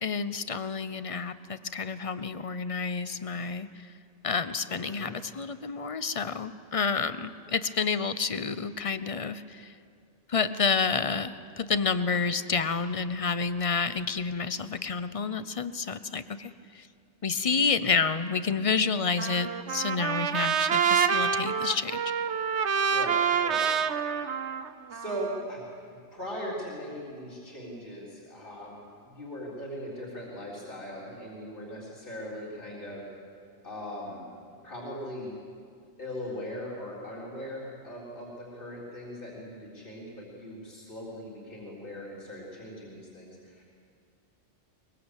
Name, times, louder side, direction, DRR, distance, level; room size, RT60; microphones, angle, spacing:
voice 1, 0.0-3.9 4.2-9.7 10.3-16.9 17.2-22.0, left 5 dB, 35° left, 13 dB, 0.8 m, -29 dB
voice 2, 4.7-5.1 22.9-23.7 24.9-25.6 26.1-33.1 33.6-35.4 36.0-43.6, equal, 50° left, -5 dB, 4.1 m, -39 dB
Trumpet, 19.2-25.4, right 7 dB, 75° right, 1.2 m, -27 dB
23.0 x 22.5 x 8.3 m, 2.3 s
omnidirectional pair, 1.2 m